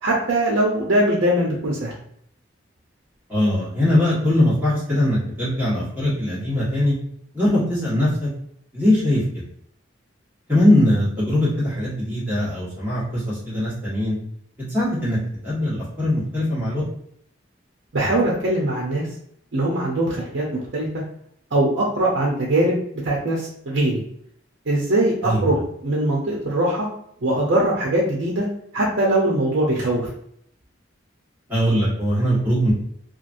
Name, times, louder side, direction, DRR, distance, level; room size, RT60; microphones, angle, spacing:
voice 1, 0.0-1.9 17.9-19.1 19.5-20.9 21.5-24.0 24.7-26.9 27.2-28.5 28.7-30.1, right 1 dB, 65° right, -4 dB, 0.7 m, -21 dB
voice 2, 3.3-6.9 7.3-8.3 8.7-9.4 10.5-14.2 14.7-16.8 25.2-25.6 31.5-32.7, left 1 dB, 10° right, -10 dB, 1.4 m, -21 dB
3.0 x 2.4 x 2.5 m, 0.70 s
head